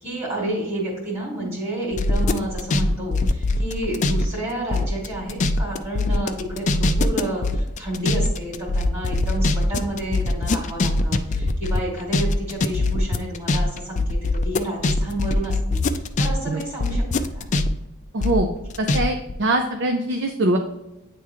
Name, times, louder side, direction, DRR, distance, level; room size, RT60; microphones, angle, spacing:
voice 1, 0.0-14.0 14.3-15.8 16.2-17.5, right 1 dB, 30° right, -4 dB, 2.2 m, -30 dB
sound 1, 1.9-4.2 4.5-16.3 16.6-19.0 19.3-19.4, left 2 dB, 35° left, 0.4 m, -22 dB
voice 2, 18.1-18.5 18.8-20.6, right 1 dB, 55° right, 4 dB, 0.5 m, -22 dB
9.3 x 3.5 x 2.9 m, 0.96 s
head